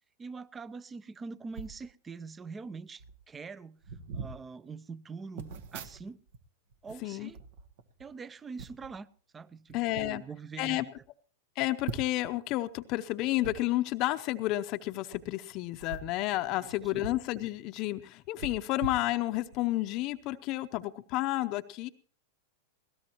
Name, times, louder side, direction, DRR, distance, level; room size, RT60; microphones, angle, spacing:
voice 1, 0.2-3.8 4.1-6.2 6.8-7.4 8.0-9.1 9.3-10.9 16.5-16.6 16.9-17.0, right 4 dB, 20° right, 0.6 m, -44 dB
sound 1, 1.5-1.8 2.7-2.8 3.0-3.2 3.8-4.4 5.4-6.4 6.7-8.1 8.6-8.9 9.7-10.1 10.6-10.7 11.0-11.1 11.8-12.3 13.4-13.6 15.0-15.2 15.8-17.3 17.6-17.7 18.4-19.6 20.1-20.2, right 4 dB, 65° right, 1.3 m, -42 dB
voice 2, 7.0-7.3 9.7-10.2 10.6-10.9 11.6-21.9, left 17 dB, 45° left, 0.7 m, -31 dB
21.0 x 17.0 x 3.0 m
hypercardioid pair, 115°, 0 cm